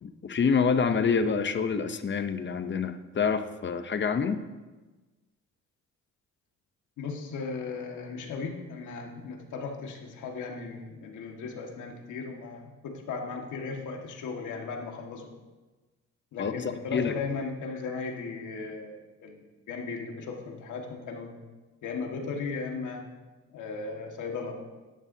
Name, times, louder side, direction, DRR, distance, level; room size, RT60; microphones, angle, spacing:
voice 1, 0.0-4.4 16.4-17.2, left 5 dB, 40° left, 9 dB, 0.8 m, -27 dB
voice 2, 7.0-15.3 16.3-21.3 21.8-23.0 23.5-24.6, left 4 dB, 80° left, 1 dB, 1.8 m, -36 dB
13.5 x 11.0 x 2.8 m, 1.2 s
cardioid pair, 90°, 30 cm